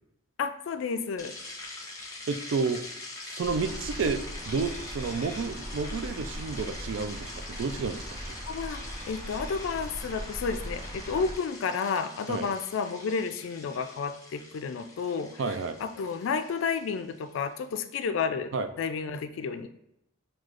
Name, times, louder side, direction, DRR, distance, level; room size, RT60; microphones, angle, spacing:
voice 1, 0.4-1.4 8.5-15.4 15.8-18.5 18.8-19.7, left 5 dB, 75° left, 9 dB, 0.3 m, -31 dB
sound 1, 1.2-17.5, left 2 dB, 15° left, 0.6 m, -44 dB
voice 2, 2.3-2.8 3.2-8.3 12.3-12.5 15.4-15.8 18.5-18.7, right 4 dB, 70° right, 10 dB, 0.3 m, -31 dB
sound 2, 3.4-11.4, equal, 45° right, 1.4 m, -40 dB
6.1 x 2.3 x 2.4 m, 0.80 s
head